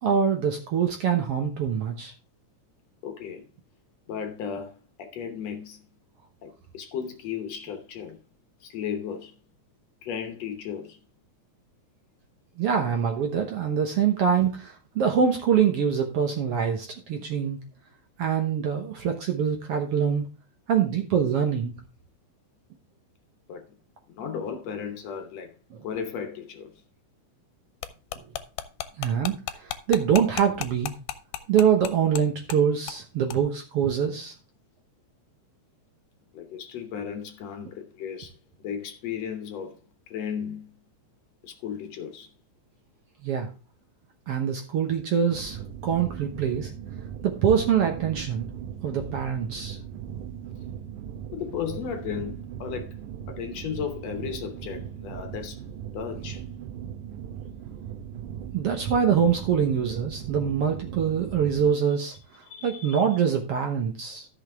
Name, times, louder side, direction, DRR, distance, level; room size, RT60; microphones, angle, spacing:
voice 1, 0.0-2.1 12.6-17.6 18.2-20.3 20.7-21.7 29.0-30.9 31.5-34.3 43.2-43.5 44.3-46.7 47.2-48.4 48.8-49.8 58.5-62.1 62.6-64.3, right 7 dB, 60° right, 1.7 m, -24 dB
voice 2, 3.0-3.5 4.1-5.8 6.4-8.2 8.6-9.3 10.0-11.0 23.5-23.6 24.1-25.5 25.8-26.7 36.3-38.3 38.6-39.7 40.1-40.7 41.4-42.3 51.3-53.0 53.3-55.6 55.9-56.4 62.5-63.0, left 7 dB, 65° left, 2.0 m, -35 dB
sound 1, 27.8-32.2 32.5-32.6 32.9-33.0 33.3-33.4, left 12 dB, 80° left, 2.2 m, -33 dB
sound 2, 45.3-61.7, right 9 dB, 80° right, 2.2 m, -38 dB
13.5 x 6.1 x 3.5 m
omnidirectional pair, 3.6 m